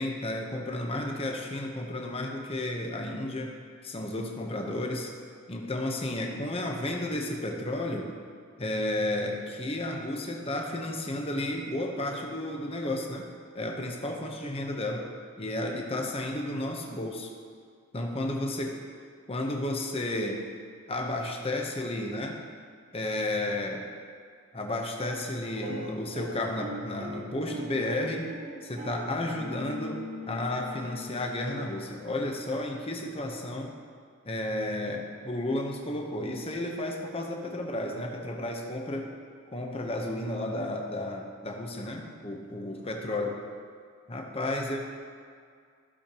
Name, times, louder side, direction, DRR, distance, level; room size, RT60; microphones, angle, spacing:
voice 1, 0.0-3.5 3.8-5.1 5.5-8.1 8.6-13.3 13.5-15.1 15.4-17.3 17.9-18.8 19.3-20.4 20.9-22.4 22.9-23.8 24.5-28.3 28.6-30.0 30.3-33.7 34.2-39.1 39.5-43.4 44.1-44.8, left 1 dB, 25° left, 2 dB, 0.9 m, -32 dB
sound 1, 25.6-32.1, left 1 dB, 30° right, 0.9 m, -41 dB
15.0 x 6.6 x 3.0 m, 2.2 s
head